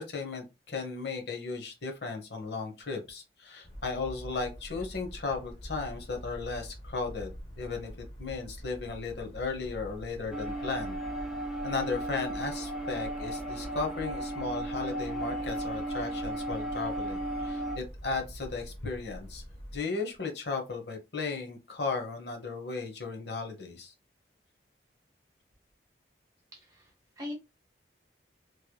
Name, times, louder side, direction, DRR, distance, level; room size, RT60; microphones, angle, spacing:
voice 1, 0.0-11.0 11.6-19.4 19.7-23.9, left 4 dB, 70° left, 3 dB, 1.0 m, -35 dB
sound 1, 3.6-19.8, equal, 35° left, 1.0 m, -45 dB
sound 2, 10.3-17.8, right 1 dB, 5° right, 0.8 m, -35 dB
voice 2, 26.5-27.3, left 2 dB, 20° right, -1 dB, 1.1 m, -42 dB
3.2 x 3.0 x 2.2 m, 0.25 s
head